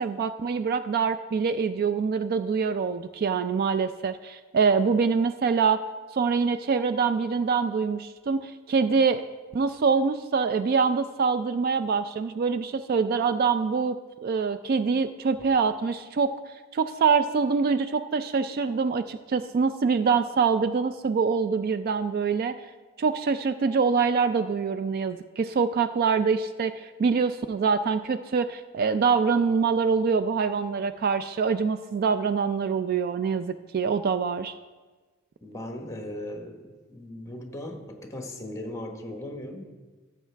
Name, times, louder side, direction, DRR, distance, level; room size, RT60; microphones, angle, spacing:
voice 1, 0.0-5.8 6.1-9.2 9.5-16.3 16.7-22.6 23.0-34.5, right 5 dB, 50° right, 11 dB, 0.3 m, -25 dB
voice 2, 35.4-39.6, left 1 dB, 15° left, 3 dB, 1.1 m, -38 dB
15.0 x 7.3 x 3.3 m, 1.3 s
head